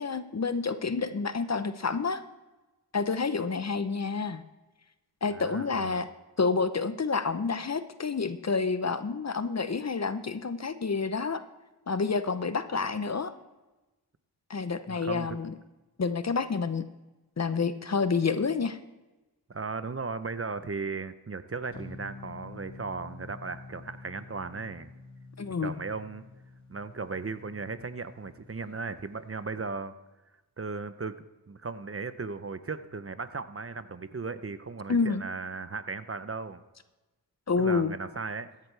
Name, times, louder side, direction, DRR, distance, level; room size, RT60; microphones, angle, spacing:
voice 1, 0.0-2.2 2.9-4.4 5.2-6.1 6.4-11.4 11.9-13.3 14.5-15.5 16.0-16.8 17.4-18.8 25.4-25.7 34.9-35.2 37.5-37.9, left 4 dB, 40° left, 12 dB, 0.8 m, -29 dB
voice 2, 5.3-6.0 14.9-15.4 19.5-24.9 25.6-26.2 26.7-29.9 30.6-31.2 31.5-36.6 37.6-38.5, right 4 dB, 35° right, 12 dB, 0.7 m, -36 dB
sound 1, 21.7-28.6, left 3 dB, 75° left, 4.4 m, -48 dB
14.5 x 10.5 x 3.4 m, 1.1 s
cardioid pair, 40°, 39 cm